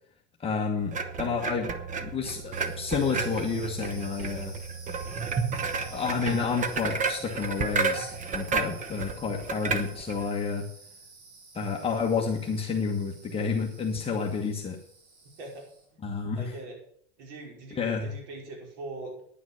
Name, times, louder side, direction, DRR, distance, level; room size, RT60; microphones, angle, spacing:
voice 1, 0.4-1.7 2.0-4.5 5.8-10.6 11.5-14.8 16.0-16.5 17.7-18.1, left 5 dB, 15° left, -1 dB, 1.4 m, -30 dB
sound 1, 0.9-10.3, right 5 dB, 25° right, 1.0 m, -32 dB
sound 2, 2.4-15.9, right 3 dB, 90° right, 6.3 m, -50 dB
voice 2, 16.4-16.8 17.2-19.2, right 2 dB, 70° right, 0 dB, 5.3 m, -41 dB
10.0 x 9.3 x 6.4 m, 0.64 s
supercardioid pair, 140°, 33 cm